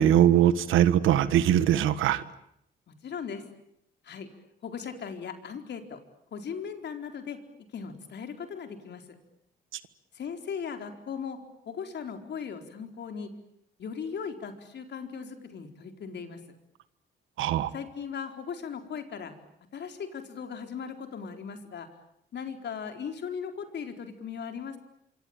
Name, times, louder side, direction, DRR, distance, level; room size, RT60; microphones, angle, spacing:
voice 1, 0.0-2.2 17.4-17.7, right 11 dB, 85° right, 14 dB, 1.5 m, -21 dB
voice 2, 2.9-3.4 4.0-4.3 4.6-6.0 6.3-7.4 7.7-9.0 10.1-11.4 11.7-13.3 13.8-16.4 17.7-19.3 19.7-21.9 22.3-24.8, left 6 dB, 60° left, 6 dB, 4.3 m, -38 dB
26.0 x 25.5 x 9.0 m, 0.75 s
cardioid pair, 90°, 20 cm